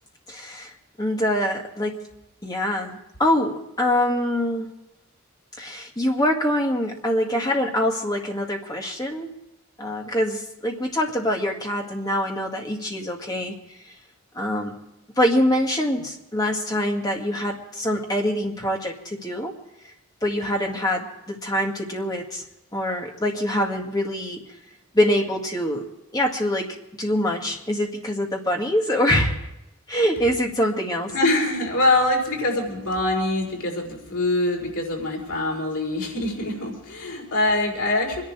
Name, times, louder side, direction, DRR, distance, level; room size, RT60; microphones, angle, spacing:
voice 1, 0.3-0.7 1.0-2.0 2.4-4.7 5.6-9.3 9.8-13.6 14.3-14.8 15.2-19.5 20.2-22.4 22.7-24.4 24.9-25.8 26.1-29.4 29.9-31.1, left 1 dB, 15° left, 1 dB, 1.9 m, -24 dB
voice 2, 31.1-38.2, left 2 dB, 90° left, -1 dB, 5.3 m, -24 dB
25.0 x 11.0 x 4.7 m, 0.90 s
head